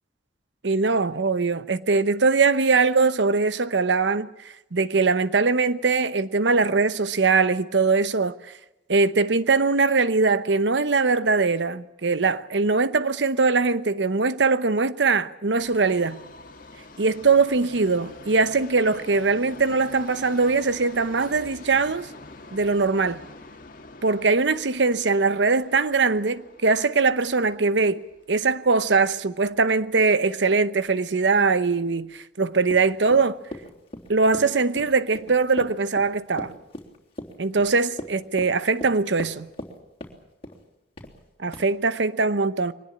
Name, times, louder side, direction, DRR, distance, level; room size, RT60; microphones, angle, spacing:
voice 1, 0.6-4.3 4.7-8.3 8.9-16.2 17.0-22.1 22.5-23.2 24.0-28.0 28.3-33.4 34.1-36.5 37.4-39.5 41.4-42.7, right 4 dB, 80° right, 0.9 m, -21 dB
Subway metro underground, 15.6-29.7 30.0-30.1 30.9-31.0 31.3-31.4 32.1-32.2, left 2 dB, 50° left, 2.0 m, -46 dB
Run, 32.6-39.7 40.0-40.6 41.0-41.2 41.5-41.7, left 1 dB, 35° left, 3.4 m, -38 dB
23.0 x 19.5 x 8.7 m
head